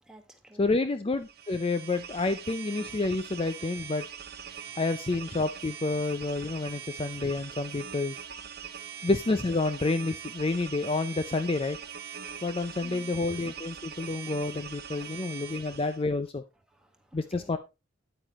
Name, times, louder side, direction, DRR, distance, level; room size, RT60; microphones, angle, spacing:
voice 1, 0.0-0.8 4.5-4.8 8.7-9.0 12.8-13.2 13.9-14.3 14.9-15.5 16.7-17.6, right 1 dB, 5° right, 1.6 m, -55 dB
voice 2, 0.6-4.0 4.8-8.2 9.0-11.8 12.4-16.4 17.1-17.6, left 3 dB, 30° left, 0.5 m, -29 dB
sound 1, 1.2-16.0, right 8 dB, 55° right, 0.9 m, -42 dB
9.1 x 8.7 x 3.0 m
head